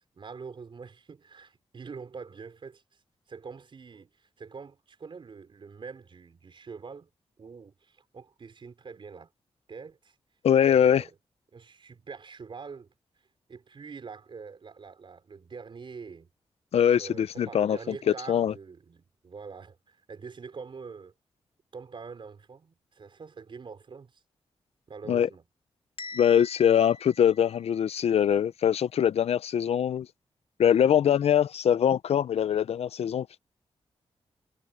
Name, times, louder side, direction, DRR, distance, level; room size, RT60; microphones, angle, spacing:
voice 1, 0.1-3.0 3.3-7.1 7.4-9.3 9.7-10.2 10.6-11.1 11.5-12.9 13.5-16.3 16.9-21.1 21.7-24.2 24.9-25.4, right 5 dB, 55° right, 4.6 m, -44 dB
voice 2, 10.4-11.0 16.7-17.9 18.3-18.5 25.1-25.3 26.1-30.1 30.6-33.4, left 9 dB, 80° left, 0.5 m, -23 dB
Bell, 26.0-28.0, left 3 dB, 60° left, 1.2 m, -44 dB
wide cardioid pair, 110°, 10 cm